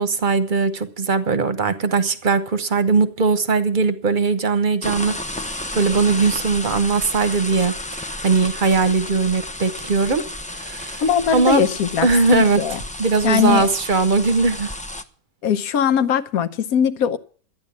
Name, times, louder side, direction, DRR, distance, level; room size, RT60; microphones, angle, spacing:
voice 1, 0.0-5.2 5.5-10.2 10.5-11.0 11.3-11.6 12.0-14.7, right 4 dB, 40° right, 1.0 m, -20 dB
sound 1, 4.8-15.0, left 1 dB, 10° left, 0.3 m, -32 dB
voice 2, 11.0-12.8 13.2-13.7 15.4-17.2, left 8 dB, 75° left, 1.3 m, -20 dB
12.5 x 9.7 x 7.2 m
omnidirectional pair, 1.5 m